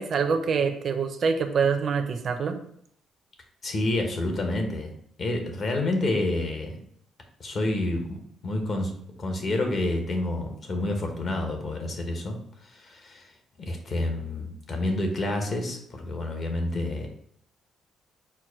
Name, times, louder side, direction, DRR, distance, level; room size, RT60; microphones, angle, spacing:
voice 1, 0.0-2.6, right 5 dB, 55° right, 7 dB, 0.5 m, -25 dB
voice 2, 3.6-6.8 7.4-12.4 12.6-13.3 13.6-17.1, left 2 dB, 50° left, 3 dB, 1.0 m, -29 dB
4.5 x 2.2 x 4.6 m, 0.68 s
cardioid pair, 90°, 0 cm